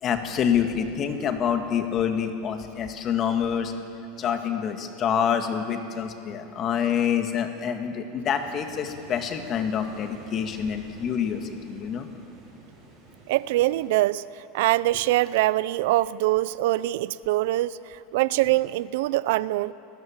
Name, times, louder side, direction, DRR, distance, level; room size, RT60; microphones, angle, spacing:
voice 1, 0.0-3.7 4.2-12.1, left 8 dB, 30° left, 6 dB, 2.0 m, -27 dB
sound 1, 8.2-13.9, right 3 dB, 35° right, 6.7 m, -49 dB
voice 2, 13.3-19.7, right 16 dB, 65° right, 18 dB, 0.6 m, -24 dB
30.0 x 20.5 x 7.4 m, 2.7 s
supercardioid pair, 160°, 0 cm